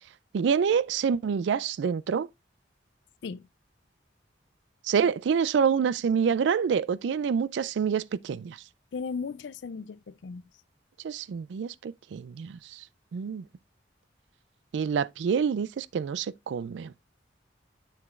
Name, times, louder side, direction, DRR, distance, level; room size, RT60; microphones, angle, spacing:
voice 1, 0.3-2.3 4.8-8.6 11.0-12.8 13.1-13.4 14.7-16.9, right 6 dB, 75° right, 0.3 m, -27 dB
voice 2, 8.9-10.4, left 5 dB, 70° left, 0.4 m, -36 dB
6.9 x 6.8 x 2.4 m
head